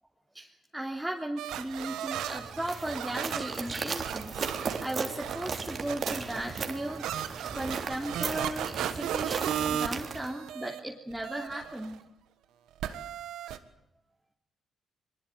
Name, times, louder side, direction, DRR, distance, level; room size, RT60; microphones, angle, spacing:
voice 1, 0.3-7.1 7.5-12.0, right 1 dB, 5° right, -1 dB, 3.5 m, -36 dB
sound 1, 1.4-10.8 11.1-12.0 12.8-13.6, right 10 dB, 75° right, 1.6 m, -36 dB
sound 2, 2.2-9.7, right 3 dB, 35° right, 3.8 m, -46 dB
sound 3, 2.7-10.3, right 5 dB, 50° right, 3.2 m, -37 dB
23.0 x 21.5 x 9.2 m, 0.76 s
hypercardioid pair, 50°, 0 cm